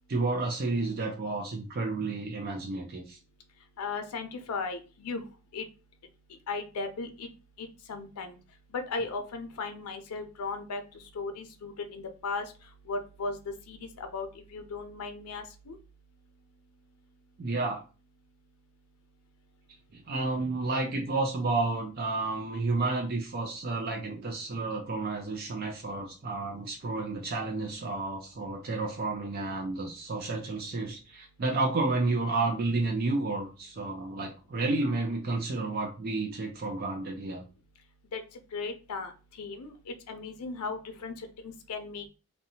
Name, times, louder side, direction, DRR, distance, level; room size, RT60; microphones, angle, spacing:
voice 1, 0.1-3.2 17.4-17.8 19.9-37.4, right 3 dB, 40° right, 2 dB, 0.4 m, -31 dB
voice 2, 3.8-5.2 5.5-5.6 6.5-7.3 7.6-8.4 8.7-10.8 11.1-12.5 12.9-13.4 13.7-14.3 14.5-15.8 38.1-38.2 38.5-39.1 39.4-42.1, left 4 dB, 90° left, 7 dB, 0.5 m, -36 dB
2.7 x 2.1 x 2.7 m, 0.33 s
head